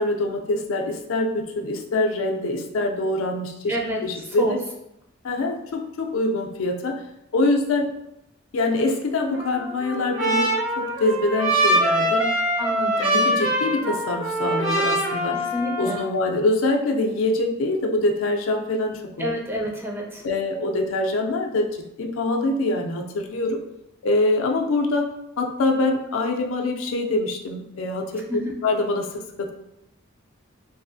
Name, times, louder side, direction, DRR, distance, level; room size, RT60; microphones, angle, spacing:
voice 1, 0.0-3.8 4.0-4.6 5.2-7.0 7.3-7.9 8.5-12.3 13.1-15.4 15.8-19.3 20.2-23.6 24.0-25.1 25.4-29.5, left 2 dB, 75° left, 3 dB, 0.4 m, -24 dB
voice 2, 3.7-4.6 12.6-13.3 15.3-16.0 19.2-20.2 28.3-28.6, equal, 10° right, -1 dB, 0.4 m, -29 dB
Trumpet, 9.3-16.1, right 1 dB, 60° right, 1.0 m, -23 dB
2.7 x 2.4 x 2.5 m, 0.83 s
head